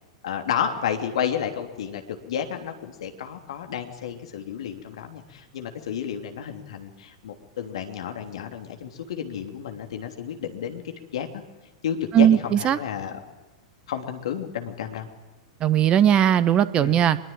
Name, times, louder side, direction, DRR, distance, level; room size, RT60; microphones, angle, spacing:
voice 1, 0.2-2.0 2.3-11.4 11.8-13.2 13.9-15.1 16.7-17.0, left 8 dB, 60° left, 5 dB, 3.0 m, -31 dB
voice 2, 12.1-12.8 15.6-17.2, right 10 dB, 30° right, 16 dB, 1.2 m, -18 dB
24.0 x 22.0 x 8.9 m, 1.1 s
figure-of-eight pair, 95°, 3 cm